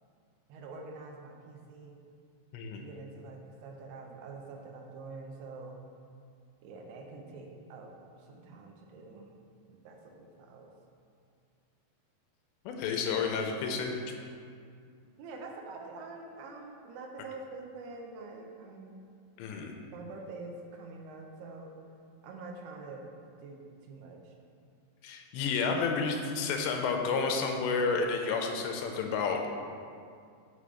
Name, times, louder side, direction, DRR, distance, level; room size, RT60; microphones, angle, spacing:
voice 1, 0.5-2.0 2.8-5.8 6.6-9.4 9.7-10.7 15.2-18.9 19.9-21.7 22.2-23.1 23.4-24.3, right 3 dB, 75° right, 2 dB, 2.6 m, -46 dB
voice 2, 2.5-2.8 12.7-14.0 19.4-19.7 25.0-29.5, left 5 dB, 90° left, 3 dB, 2.9 m, -30 dB
6.7 x 5.7 x 4.9 m, 2.3 s
omnidirectional pair, 5.0 m